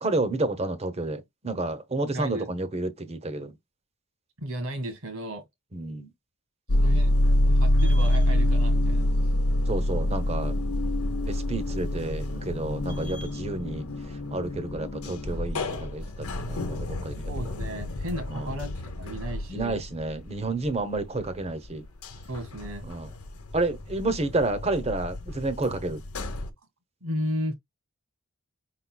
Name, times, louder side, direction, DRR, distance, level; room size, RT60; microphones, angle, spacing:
voice 1, 0.0-3.5 5.7-6.1 9.7-10.5 11.3-13.9 14.3-17.3 18.3-18.6 19.5-21.8 22.8-23.1 23.5-26.0, right 2 dB, 30° right, 0.8 m, -30 dB
voice 2, 2.1-2.5 4.4-5.5 6.8-7.1 7.4-9.3 17.3-19.8 22.3-22.9 27.0-27.5, equal, 75° right, 1.8 m, -34 dB
sound 1, 6.7-21.3 21.6-26.5, left 1 dB, 80° left, 1.0 m, -27 dB
5.3 x 4.0 x 2.2 m
head